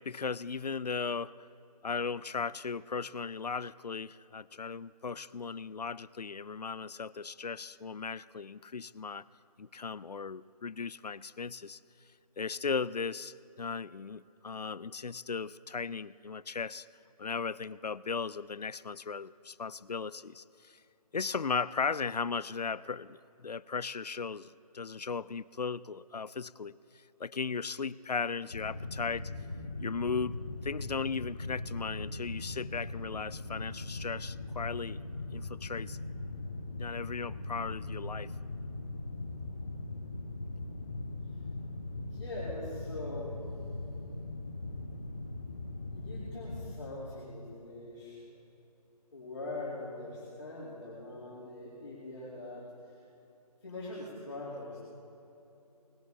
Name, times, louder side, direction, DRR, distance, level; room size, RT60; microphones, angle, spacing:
voice 1, 0.1-1.3 1.8-9.2 9.6-11.8 12.4-16.9 17.2-20.8 21.1-26.8 27.2-29.3 29.8-35.0 35.3-36.0 36.8-38.3, left 5 dB, 90° left, 20 dB, 0.4 m, -37 dB
sound 1, 28.5-46.7, left 2 dB, 15° left, 0.4 m, -40 dB
voice 2, 41.9-43.4 45.8-48.2 49.1-53.0 53.6-54.8, left 2 dB, 45° left, -10 dB, 4.1 m, -42 dB
19.5 x 14.0 x 4.1 m, 3.0 s
figure-of-eight pair, 155°, 20 cm